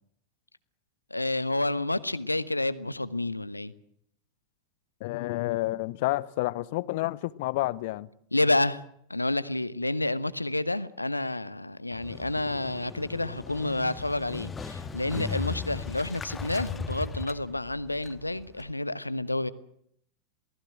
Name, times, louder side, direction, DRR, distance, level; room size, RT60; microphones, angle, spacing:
voice 1, 1.1-3.7 8.3-8.8 9.1-19.5, left 2 dB, 85° left, 1.1 m, -29 dB
voice 2, 5.0-8.1, left 18 dB, 50° left, 0.9 m, -29 dB
Motorcycle, 11.9-18.7, left 5 dB, 15° left, 1.7 m, -38 dB
28.0 x 19.0 x 7.7 m
figure-of-eight pair, 90°, 0 cm